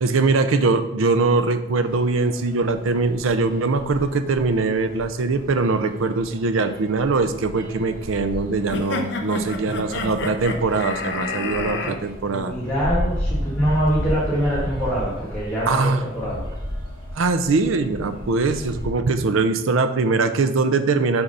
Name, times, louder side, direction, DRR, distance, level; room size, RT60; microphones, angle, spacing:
voice 1, 0.0-12.5 15.7-16.0 17.1-21.2, right 3 dB, 90° right, 10 dB, 0.5 m, -22 dB
sound 1, 1.8-18.9, equal, 45° right, 2.4 m, -34 dB
sound 2, 8.7-11.9, left 3 dB, 60° left, 0.7 m, -29 dB
voice 2, 12.3-16.4, equal, 10° left, -10 dB, 1.8 m, -24 dB
7.1 x 3.8 x 5.4 m, 0.96 s
head